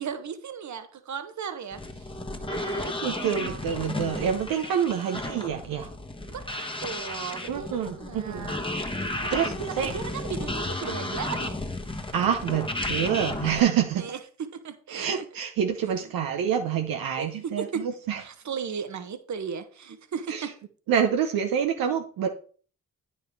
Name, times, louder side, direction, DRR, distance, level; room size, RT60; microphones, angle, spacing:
voice 1, 0.0-3.6 6.3-6.4 6.8-8.6 9.2-11.6 14.0-14.2 14.5-15.2 16.0-16.1 17.2-17.3 17.6-17.8 18.2-20.5, right 6 dB, 55° right, 10 dB, 1.3 m, -36 dB
sound 1, 1.7-13.6, left 1 dB, 15° left, 1.3 m, -33 dB
voice 2, 3.0-5.9 7.5-8.5 9.3-9.9 12.1-14.0 14.9-18.2 20.3-20.5 20.9-22.3, right 8 dB, 75° right, 4 dB, 0.9 m, -27 dB
9.2 x 5.7 x 4.6 m, 0.42 s
supercardioid pair, 50°, 35 cm